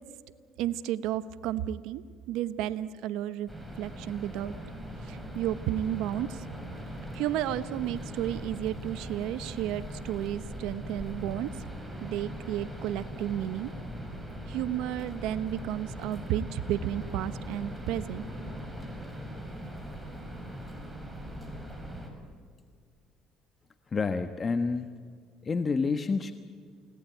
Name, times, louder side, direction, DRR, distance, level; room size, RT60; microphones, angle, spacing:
voice 1, 0.6-2.0 2.3-3.5 3.8-4.6 5.0-6.4 7.1-11.5 12.0-13.7 14.5-18.2, right 12 dB, 75° right, 13 dB, 1.0 m, -32 dB
sound 1, 3.5-22.1, equal, 5° right, 6.0 m, -40 dB
voice 2, 23.9-24.9 25.4-26.3, left 4 dB, 35° left, 9 dB, 1.2 m, -28 dB
29.5 x 18.0 x 9.2 m, 2.1 s
supercardioid pair, 80°, 0 cm